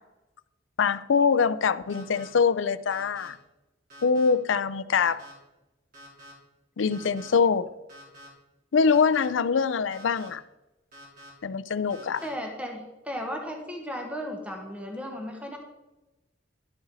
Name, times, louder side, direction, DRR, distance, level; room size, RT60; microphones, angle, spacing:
voice 1, 0.8-3.4 4.0-5.2 6.8-7.7 8.7-10.4 11.4-12.2, left 5 dB, 75° left, 0.5 m, -24 dB
sound 1, 1.9-2.3 2.9-3.3 3.9-4.3 4.9-5.3 5.9-6.3 6.9-7.3 7.9-8.3 8.9-9.3 9.9-10.3 10.9-11.3 11.9-12.3, equal, 50° right, 3.8 m, -48 dB
voice 2, 12.2-15.6, equal, 5° right, 1.2 m, -35 dB
11.5 x 8.0 x 4.0 m
head